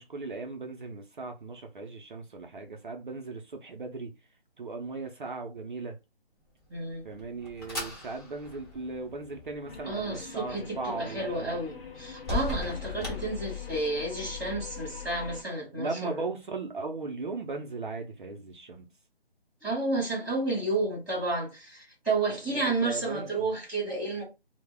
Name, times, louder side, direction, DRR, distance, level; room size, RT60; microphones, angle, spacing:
voice 1, 0.0-4.1 4.6-6.0 7.0-11.6 15.7-18.9 22.5-23.5, right 3 dB, 55° right, 0.5 m, -37 dB
sound 1, 6.7-14.0, left 2 dB, 25° left, 0.9 m, -40 dB
voice 2, 6.7-7.0 9.8-16.2 19.6-24.2, right 2 dB, ahead, 0.7 m, -31 dB
sound 2, 9.7-15.4, left 8 dB, 70° left, 0.6 m, -42 dB
2.0 x 2.0 x 3.3 m
figure-of-eight pair, 165°, 31 cm